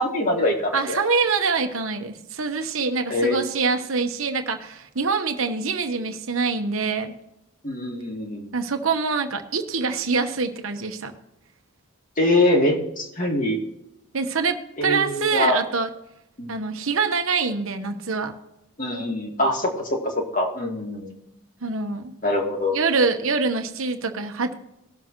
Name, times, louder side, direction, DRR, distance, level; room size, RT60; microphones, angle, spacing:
voice 1, 0.0-1.0 3.1-3.4 7.6-8.5 12.2-13.6 14.8-15.6 16.4-16.5 18.8-21.1 22.2-22.8, left 1 dB, 35° left, 1 dB, 2.0 m, -23 dB
voice 2, 0.7-7.1 8.5-11.1 14.1-15.9 16.5-18.3 21.6-22.1 22.7-24.5, right 4 dB, 65° right, 6 dB, 1.1 m, -25 dB
19.5 x 7.3 x 3.1 m, 0.86 s
head